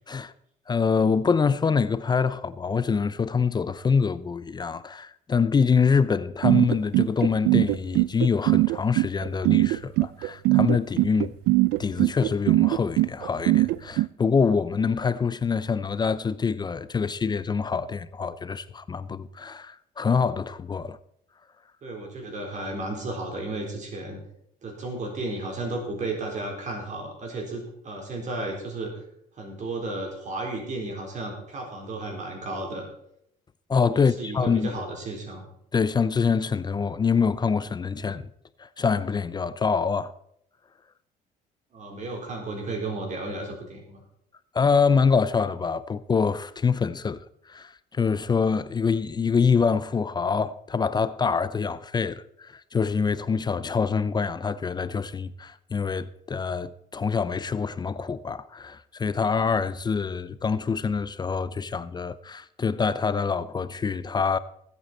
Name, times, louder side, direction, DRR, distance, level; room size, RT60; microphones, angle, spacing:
voice 1, 0.7-11.3 11.8-21.0 33.7-34.7 35.7-38.3 38.6-40.1 44.5-64.4, left 5 dB, 25° left, 0.5 m, -25 dB
sound 1, 6.4-14.1, right 19 dB, 85° right, 0.4 m, -21 dB
voice 2, 21.8-24.2 24.6-29.0 29.4-32.8 33.9-35.5 41.7-44.0, right 2 dB, 45° right, 4.1 m, -33 dB
19.5 x 8.3 x 4.3 m
cardioid pair, 110°, 17 cm